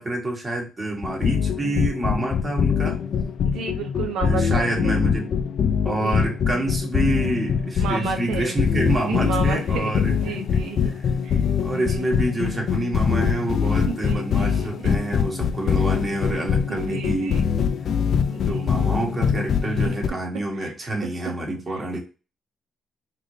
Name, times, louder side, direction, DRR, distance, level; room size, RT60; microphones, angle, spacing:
voice 1, 0.0-3.0 4.2-5.3 5.8-10.6 10.8-11.1 11.6-17.4 18.5-22.0, right 2 dB, 25° right, 0 dB, 1.5 m, -27 dB
sound 1, 1.0-20.1, left 7 dB, 60° left, 0.4 m, -23 dB
voice 2, 3.4-5.0 5.9-6.3 7.8-8.5 9.1-10.9 11.2-11.4 11.7-12.1 13.7-14.9 15.7-15.8 16.3-16.4 16.7-17.5 18.3-18.7 19.8-19.9 20.5-20.9 21.7-21.8, right 6 dB, 85° right, 4 dB, 0.6 m, -32 dB
4.0 x 2.9 x 3.2 m, 0.32 s
cardioid pair, 90°, 0 cm